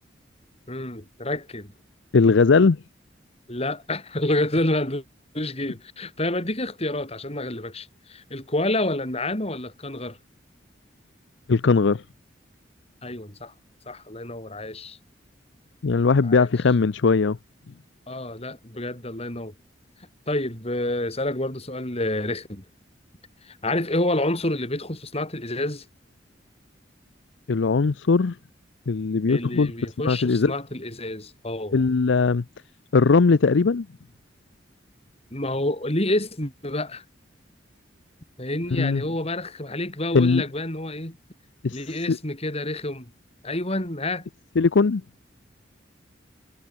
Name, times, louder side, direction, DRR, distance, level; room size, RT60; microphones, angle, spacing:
voice 1, 0.7-1.7 3.5-5.0 5.3-10.2 13.0-13.5 13.9-15.0 16.2-16.5 18.1-19.5 20.3-22.6 23.4-25.9 29.3-31.8 35.3-37.0 38.4-41.2 41.7-43.1 43.4-44.3, left 1 dB, 35° left, 5.6 m, -28 dB
voice 2, 2.1-2.8 11.5-12.0 15.8-17.4 27.5-28.3 28.9-29.7 30.0-30.5 31.7-32.4 32.9-33.9 38.7-39.0 40.1-40.4 41.6-41.7 42.1-42.2 44.6-45.0, left 4 dB, 75° left, 0.6 m, -19 dB
head